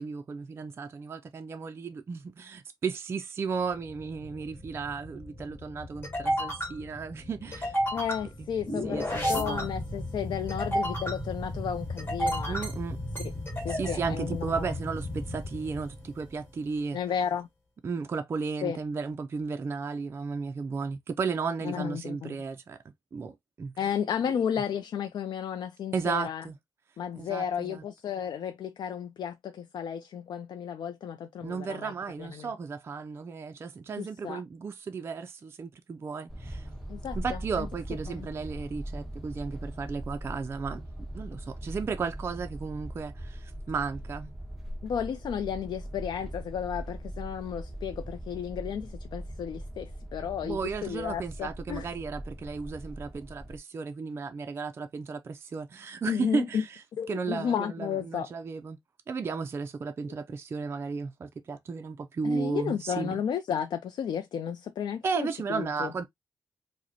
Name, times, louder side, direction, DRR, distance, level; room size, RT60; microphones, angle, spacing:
voice 1, 0.0-7.8 8.4-8.5 8.8-9.7 12.5-13.0 13.7-17.0 17.8-22.8 23.1-23.9 25.9-26.5 27.2-27.8 31.4-36.7 37.1-40.8 41.1-44.3 50.4-56.8 57.1-58.8 59.1-63.2 65.0-66.1, right 5 dB, 35° right, 0.3 m, -34 dB
sound 1, 3.7-16.4, equal, 30° left, 1.3 m, -33 dB
voice 2, 7.9-12.6 13.6-14.7 16.9-17.5 18.6-18.8 21.6-22.4 23.8-26.4 27.0-31.9 32.2-32.5 34.0-34.4 36.9-37.7 38.1-38.3 44.8-51.9 56.1-56.6 57.0-58.3 62.2-65.9, left 8 dB, 80° left, 0.4 m, -33 dB
sound 2, 36.3-53.6, right 1 dB, ahead, 0.8 m, -40 dB
4.9 x 2.1 x 2.7 m
wide cardioid pair, 175°, 7 cm